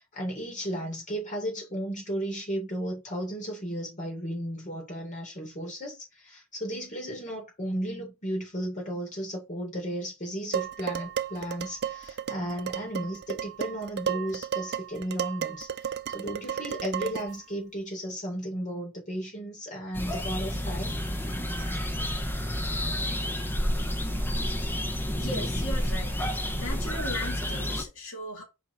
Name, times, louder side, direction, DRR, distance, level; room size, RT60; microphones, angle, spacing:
voice 1, 0.0-21.0, equal, 35° left, 3.8 m, -34 dB
Dishes pots and pans, 10.5-17.4, right 8 dB, 45° right, 0.4 m, -33 dB
sound 1, 19.9-27.8, equal, 10° left, 1.1 m, -30 dB
voice 2, 25.1-26.2 26.6-28.4, left 1 dB, 60° left, 2.9 m, -37 dB
6.9 x 4.6 x 3.2 m
head